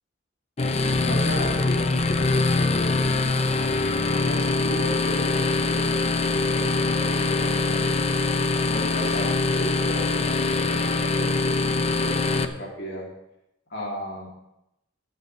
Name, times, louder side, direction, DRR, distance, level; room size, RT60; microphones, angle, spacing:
sound 1, 0.6-12.4, left 3 dB, 35° left, 0.7 m, -23 dB
voice 1, 1.0-3.2 4.2-5.4 5.7-6.1 6.3-7.9 8.6-13.1 13.7-14.3, equal, 65° left, -3 dB, 2.9 m, -35 dB
23.0 x 8.3 x 3.3 m, 0.85 s
head